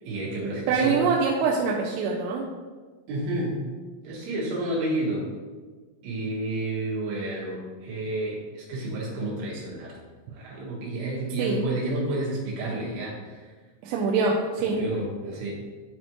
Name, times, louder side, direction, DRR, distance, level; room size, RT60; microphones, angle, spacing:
voice 1, 0.0-1.0 3.1-3.6 4.0-5.3 6.0-9.9 10.3-13.5 14.6-15.5, right 2 dB, 70° right, -4 dB, 3.8 m, -30 dB
voice 2, 0.7-2.4 11.4-11.6 13.8-14.8, right 4 dB, 85° right, -1 dB, 3.3 m, -24 dB
11.5 x 4.2 x 3.0 m, 1.4 s
omnidirectional pair, 5.9 m